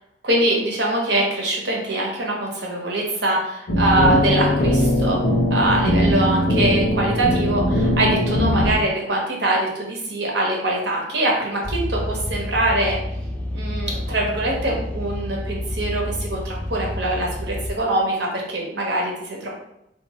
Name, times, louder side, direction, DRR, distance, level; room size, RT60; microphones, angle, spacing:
voice 1, 0.2-5.2 5.5-13.0 13.5-19.5, right 1 dB, 70° right, -2 dB, 1.0 m, -23 dB
sound 1, 3.7-8.7, left 1 dB, 65° left, 0.7 m, -20 dB
sound 2, 11.6-17.7, left 1 dB, 5° left, 0.4 m, -29 dB
3.5 x 2.5 x 3.0 m, 0.83 s
head